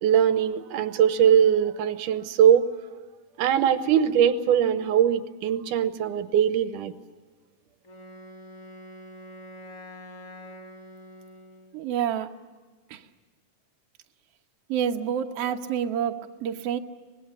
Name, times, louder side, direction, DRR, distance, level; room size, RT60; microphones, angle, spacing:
voice 1, 0.0-2.7 3.4-6.9, right 9 dB, 90° right, 12 dB, 2.6 m, -21 dB
Wind instrument woodwind instrument, 7.8-11.8, equal, 45° left, 1.1 m, -45 dB
voice 2, 11.7-12.3 12.9-13.0 14.7-16.8, right 9 dB, 60° right, 4 dB, 1.9 m, -28 dB
25.0 x 21.0 x 8.6 m, 1.4 s
omnidirectional pair, 3.6 m